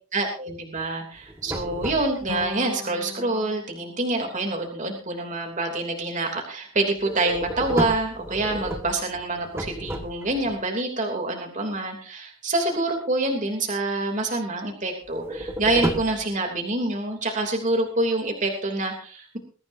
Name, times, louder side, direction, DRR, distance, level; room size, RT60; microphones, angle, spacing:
voice 1, 0.1-19.4, right 2 dB, 35° right, 2 dB, 3.1 m, -26 dB
sound 1, 1.2-2.5 7.0-10.5 15.1-16.3, right 1 dB, 10° right, 1.8 m, -31 dB
sound 2, 2.3-5.4, left 3 dB, 90° left, 4.9 m, -40 dB
21.5 x 14.5 x 2.8 m, 0.39 s
head